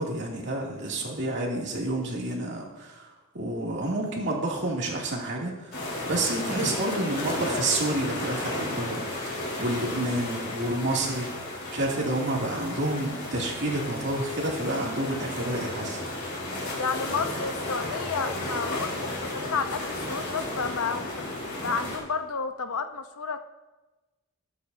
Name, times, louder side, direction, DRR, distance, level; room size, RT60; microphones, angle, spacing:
voice 1, 0.0-16.0, right 1 dB, 55° right, -2 dB, 2.5 m, -29 dB
sound 1, 5.7-22.0, left 1 dB, 50° left, 4.1 m, -33 dB
voice 2, 16.7-21.3 21.6-23.4, left 5 dB, 85° left, 9 dB, 0.8 m, -31 dB
20.0 x 8.4 x 2.7 m, 1.1 s
head